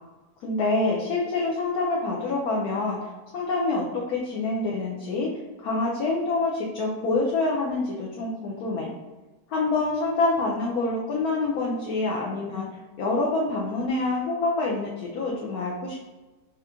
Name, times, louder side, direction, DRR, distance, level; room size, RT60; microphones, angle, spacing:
voice 1, 0.4-5.3 5.6-8.9 9.5-12.7 13.0-16.0, left 3 dB, 70° left, -3 dB, 1.1 m, -26 dB
3.6 x 2.9 x 3.5 m, 1.2 s
omnidirectional pair, 1.8 m